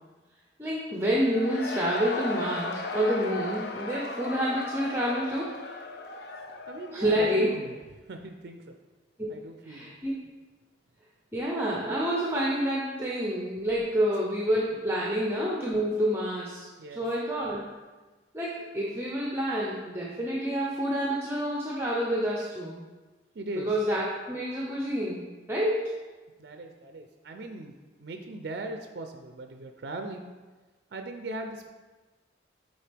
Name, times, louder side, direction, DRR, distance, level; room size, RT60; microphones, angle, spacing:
voice 1, 0.6-5.6 6.9-7.5 9.2-9.3 9.6-10.2 11.3-17.6 18.3-22.8 23.7-25.9, equal, 10° right, -4 dB, 0.6 m, -28 dB
Cheering / Crowd, 1.1-7.8, left 3 dB, 60° left, 0.5 m, -37 dB
voice 2, 6.7-7.8 8.1-8.8 9.3-9.9 16.8-17.0 23.3-23.7 26.4-30.3 30.9-31.6, right 2 dB, 55° right, 5 dB, 0.4 m, -39 dB
7.4 x 4.3 x 3.4 m, 1.2 s
head